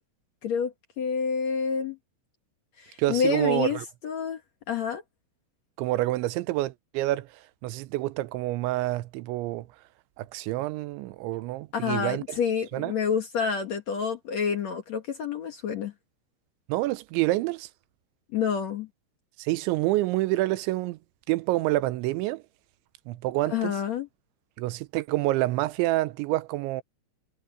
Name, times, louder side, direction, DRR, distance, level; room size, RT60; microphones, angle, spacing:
voice 1, 0.4-2.0 2.8-4.4 4.7-5.0 11.7-15.9 18.3-18.9 23.5-24.1, left 6 dB, 65° left, 1.7 m, -28 dB
voice 2, 3.0-3.9 5.8-7.3 7.6-9.7 10.2-12.4 12.7-12.9 16.7-17.7 19.4-21.0 21.3-22.4 23.1-23.8 24.6-26.8, right 18 dB, 80° right, 3.0 m, -27 dB
omnidirectional pair, 5.7 m